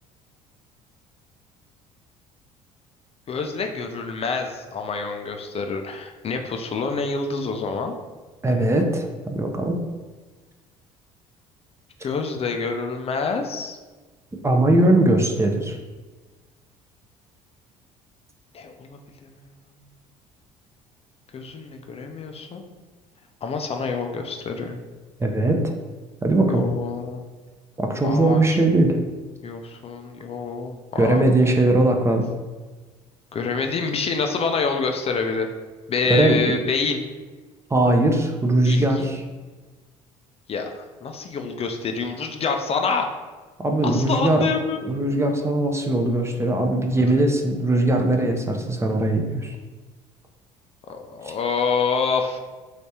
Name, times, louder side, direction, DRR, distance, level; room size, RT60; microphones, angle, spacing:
voice 1, 3.3-8.0 12.0-13.8 18.5-19.3 21.3-22.6 23.4-24.8 26.5-27.2 28.0-28.6 29.4-31.2 33.3-35.5 35.9-37.0 38.6-39.1 40.5-43.1 43.8-44.8 50.9-52.4, left 4 dB, 35° left, 4 dB, 0.4 m, -27 dB
voice 2, 8.4-9.8 14.4-15.8 25.2-25.7 26.2-26.7 27.8-29.0 31.0-32.2 36.1-36.6 37.7-39.2 43.6-44.5 44.8-49.6 51.2-51.3, right 1 dB, 15° right, 3 dB, 0.6 m, -20 dB
3.3 x 3.3 x 2.8 m, 1.3 s
hypercardioid pair, 65°, 17 cm